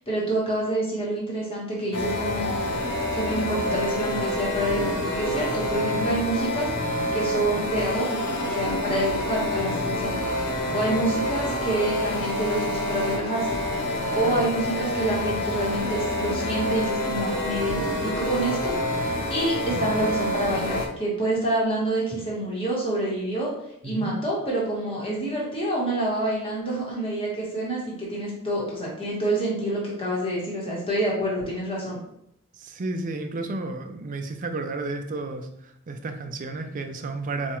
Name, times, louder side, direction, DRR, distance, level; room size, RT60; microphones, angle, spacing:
voice 1, 0.1-2.6 3.1-13.5 14.1-23.5 23.8-32.0, right 1 dB, 25° left, -4 dB, 1.1 m, -27 dB
sound 1, 1.9-20.9, left 1 dB, 80° left, 0.7 m, -27 dB
voice 2, 10.7-11.1 14.3-14.5 23.8-24.1 32.6-37.6, right 2 dB, 35° right, 6 dB, 0.4 m, -32 dB
4.3 x 2.3 x 2.9 m, 0.76 s
head